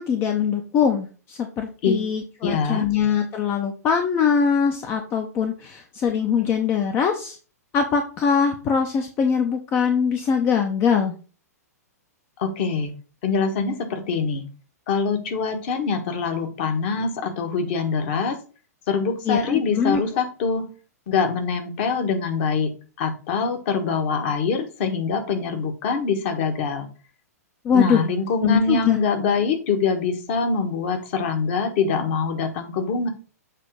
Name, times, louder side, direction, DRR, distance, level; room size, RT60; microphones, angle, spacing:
voice 1, 0.0-7.4 7.7-11.1 19.3-20.0 27.6-28.0 28.4-29.0, left 6 dB, 25° left, 5 dB, 0.7 m, -22 dB
voice 2, 2.4-2.9 12.4-12.9 13.2-14.5 14.9-18.4 18.9-20.7 21.1-26.9 27.7-33.1, left 5 dB, 45° left, 5 dB, 1.4 m, -24 dB
7.4 x 3.0 x 5.1 m, 0.36 s
figure-of-eight pair, 105°, 9 cm